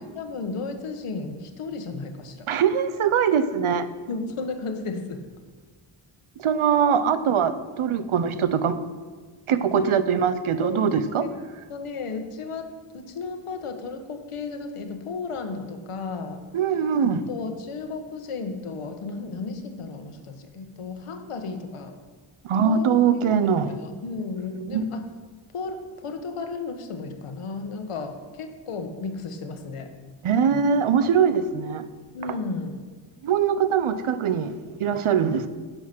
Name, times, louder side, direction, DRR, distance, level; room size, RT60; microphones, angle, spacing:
voice 1, 0.1-2.5 4.1-5.3 9.7-10.0 10.6-10.9 11.2-11.4 11.7-16.4 17.3-21.9 22.6-23.0 23.5-25.1 25.5-29.9 32.1-32.9, left 4 dB, 90° left, 1.4 m, -34 dB
voice 2, 2.5-3.9 6.4-8.8 9.5-11.2 16.5-17.2 22.4-23.7 24.6-24.8 30.2-31.8 33.2-34.5 34.8-35.5, right 7 dB, 75° right, 0.9 m, -22 dB
15.0 x 7.1 x 6.1 m
wide cardioid pair, 150°, 50 cm